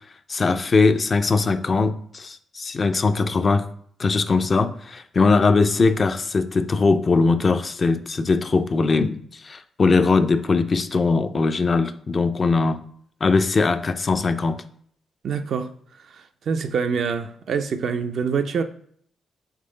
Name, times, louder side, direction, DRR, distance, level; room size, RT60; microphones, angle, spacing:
voice 1, 0.3-3.7 4.0-12.8 13.2-14.6, left 4 dB, 40° left, 0.3 m, -20 dB
voice 2, 15.2-15.7 16.2-18.6, right 6 dB, 65° right, 0.4 m, -25 dB
3.7 x 3.1 x 3.8 m
cardioid pair, 80°, 0 cm